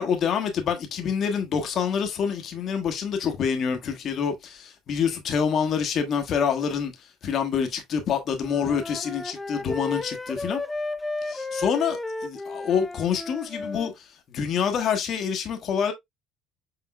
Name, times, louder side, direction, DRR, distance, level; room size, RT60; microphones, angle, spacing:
voice 1, 0.0-10.6 11.2-15.9, left 7 dB, 50° left, 1.1 m, -27 dB
Wind instrument woodwind instrument, 8.4-13.9, left 2 dB, 15° left, 0.6 m, -33 dB
5.9 x 3.8 x 2.2 m
hypercardioid pair, 75°, 0 cm